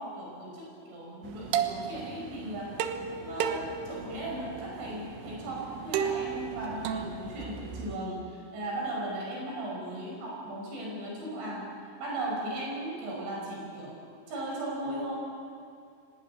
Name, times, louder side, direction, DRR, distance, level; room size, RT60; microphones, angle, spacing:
voice 1, 0.0-2.8 3.1-11.7 12.0-14.0 14.3-15.1, right 1 dB, 70° right, -2 dB, 7.8 m, -37 dB
sound 1, 1.2-8.0, right 8 dB, 85° right, 3.8 m, -35 dB
24.0 x 19.0 x 9.8 m, 2.5 s
omnidirectional pair, 5.6 m